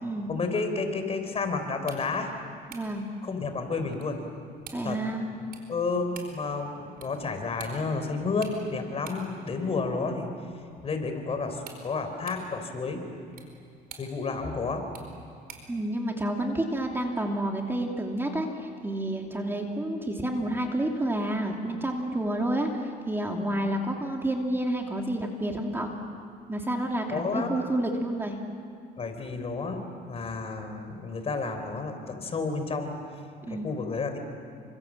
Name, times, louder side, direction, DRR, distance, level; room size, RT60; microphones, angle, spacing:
voice 1, 0.3-2.3 3.2-4.2 4.8-5.0 5.7-10.3 10.8-13.0 14.0-14.8 27.1-27.5 29.0-33.0 33.5-34.2, left 4 dB, 35° left, 6 dB, 4.0 m, -31 dB
sound 1, 1.7-15.8, right 6 dB, 65° right, 4.7 m, -52 dB
voice 2, 2.7-3.0 4.7-5.3 15.7-25.9 26.5-28.4 33.5-33.7, right 1 dB, 15° right, 2 dB, 2.7 m, -29 dB
29.5 x 26.0 x 7.6 m, 2.3 s
cardioid pair, 110°, 17 cm